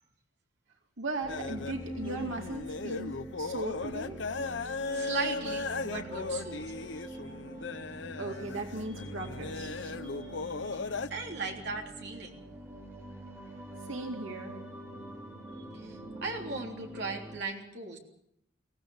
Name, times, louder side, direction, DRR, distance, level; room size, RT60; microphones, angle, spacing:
voice 1, 1.0-4.2 8.2-10.0 13.9-14.6, right 2 dB, 85° right, 2 dB, 2.5 m, -38 dB
sound 1, 1.2-17.4, right 1 dB, 15° right, 3.5 m, -44 dB
sound 2, 1.3-11.1, left 3 dB, 70° left, 0.8 m, -37 dB
voice 2, 4.8-6.8 7.1-7.2 8.4-8.5 9.0-9.1 10.0-10.3 10.6-10.8 11.1-12.5 15.7-18.0, right 3 dB, 60° right, 1 dB, 3.5 m, -38 dB
23.5 x 17.0 x 7.2 m, 0.73 s
head